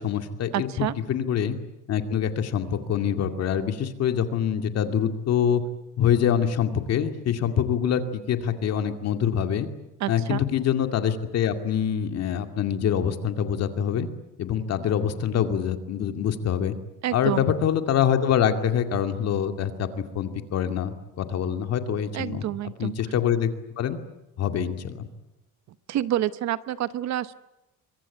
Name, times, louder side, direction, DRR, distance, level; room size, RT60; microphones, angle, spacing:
voice 1, 0.0-1.6 1.9-5.6 6.0-9.7 10.1-14.1 14.4-16.7 17.1-19.9 20.1-22.4 22.8-23.5 23.8-24.0 24.4-25.1, left 8 dB, 50° left, 7 dB, 2.3 m, -25 dB
voice 2, 0.5-0.9 10.0-10.5 17.0-17.5 22.1-22.9 25.9-27.3, right 13 dB, 55° right, 15 dB, 0.9 m, -28 dB
25.0 x 23.0 x 9.3 m, 0.96 s
cardioid pair, 170°, 34 cm